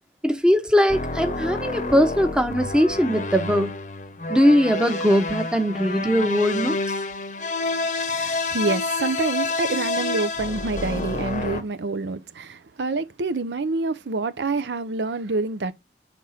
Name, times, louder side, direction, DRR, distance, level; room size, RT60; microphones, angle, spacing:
voice 1, 0.2-3.7 4.3-6.8, equal, 5° right, 0.8 m, -20 dB
sound 1, 0.9-11.6, left 3 dB, 45° left, 0.8 m, -28 dB
voice 2, 8.1-15.7, right 3 dB, 80° right, 0.6 m, -27 dB
7.1 x 3.7 x 5.6 m
head